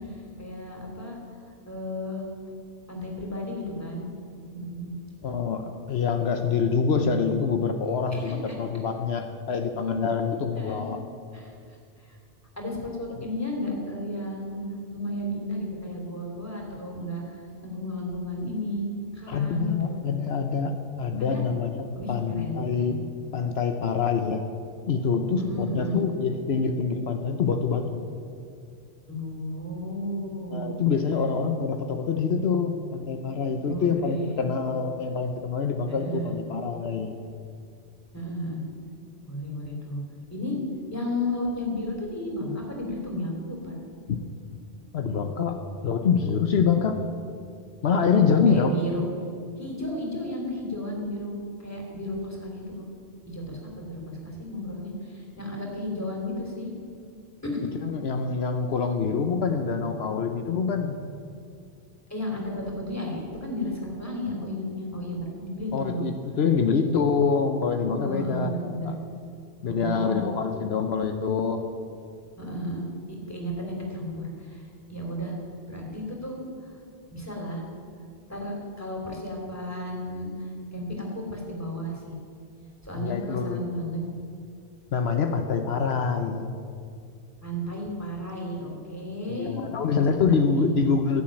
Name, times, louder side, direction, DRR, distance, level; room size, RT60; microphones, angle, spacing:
voice 1, 0.1-1.2 1.6-2.2 2.9-4.0 4.5-4.9 5.3-5.4 8.1-8.5 10.6-10.8 11.3-11.5 12.0-12.2 12.6-14.6 14.9-17.4 17.6-18.8 19.1-20.0 21.2-21.4 21.9-23.0 25.3-26.0 29.1-30.9 33.6-34.5 35.9-36.4 38.1-38.6 39.3-40.0 40.3-40.5 40.9-43.8 48.5-49.0 49.5-52.9 53.3-56.7 57.4-57.6 62.1-66.1 68.0-68.9 69.6-70.2 72.4-72.8 73.3-74.6 74.9-75.3 75.7-76.4 77.1-77.6 78.3-82.2 82.8-84.0 87.4-89.6 90.1-90.2 90.4-90.9, equal, 15° left, -1 dB, 3.1 m, -33 dB
voice 2, 5.2-11.0 19.3-23.0 23.3-24.4 24.9-28.0 30.5-37.2 44.1-44.2 44.9-45.6 45.8-47.0 47.8-48.8 57.8-61.0 65.7-68.9 69.6-71.6 82.9-83.6 84.9-86.6 89.4-91.2, left 5 dB, 75° left, 6 dB, 1.1 m, -25 dB
16.0 x 7.3 x 9.0 m, 2.3 s
omnidirectional pair, 1.1 m